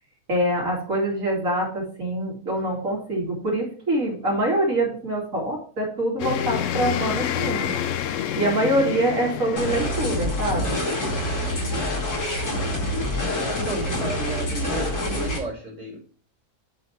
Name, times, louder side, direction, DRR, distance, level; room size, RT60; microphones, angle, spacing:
voice 1, 0.3-7.8 8.4-10.8, right 1 dB, 60° right, -4 dB, 3.1 m, -25 dB
sound 1, 6.2-12.7, left 9 dB, 65° left, 0.9 m, -29 dB
sound 2, 9.6-15.4, left 1 dB, 85° left, 3.0 m, -26 dB
voice 2, 13.4-16.0, right 2 dB, 40° right, -5 dB, 3.1 m, -33 dB
8.9 x 5.4 x 4.5 m, 0.43 s
omnidirectional pair, 1.6 m